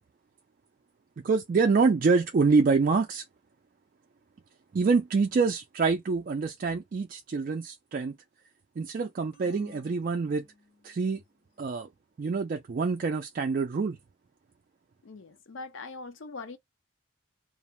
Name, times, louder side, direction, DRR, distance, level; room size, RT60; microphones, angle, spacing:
voice 1, 1.2-3.2 4.7-8.2 8.8-10.4 10.8-11.2 11.6-11.9 12.2-14.0, right 4 dB, 45° right, 0.3 m, -26 dB
sound 1, 9.3-11.0, left 1 dB, 45° left, 1.2 m, -53 dB
voice 2, 15.0-16.6, left 3 dB, 70° left, 0.6 m, -42 dB
2.4 x 2.0 x 3.0 m
head